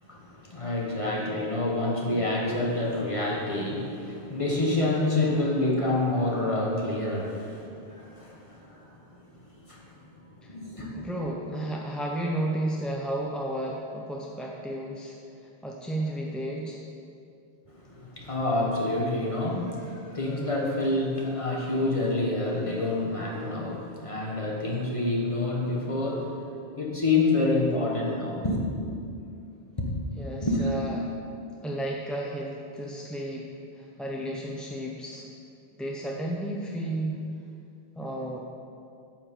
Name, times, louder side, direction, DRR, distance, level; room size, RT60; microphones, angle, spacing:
voice 1, 0.0-9.3 9.7-10.2 10.5-11.0 17.7-28.7 29.8-29.9 30.4-30.7, left 2 dB, 30° left, -2 dB, 1.4 m, -28 dB
voice 2, 10.9-15.2 15.4-16.8 30.2-31.0 31.6-33.5 33.7-35.3 35.8-37.2 38.0-38.4, right 1 dB, ahead, -2 dB, 0.5 m, -33 dB
8.8 x 5.9 x 7.0 m, 2.5 s
omnidirectional pair, 1.1 m